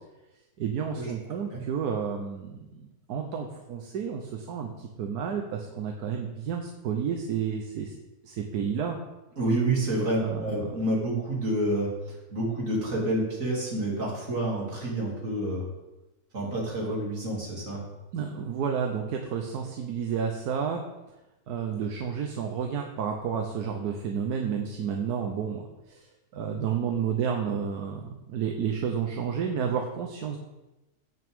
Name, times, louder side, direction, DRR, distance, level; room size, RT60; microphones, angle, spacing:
voice 1, 0.6-7.9 8.2-9.0 10.2-10.7 18.1-20.8 21.5-26.1 26.3-30.4, right 7 dB, 80° right, 3 dB, 1.4 m, -31 dB
voice 2, 9.4-15.7 16.3-17.8, right 1 dB, 55° right, -3 dB, 3.2 m, -28 dB
16.5 x 6.0 x 3.6 m, 1.0 s
omnidirectional pair, 1.6 m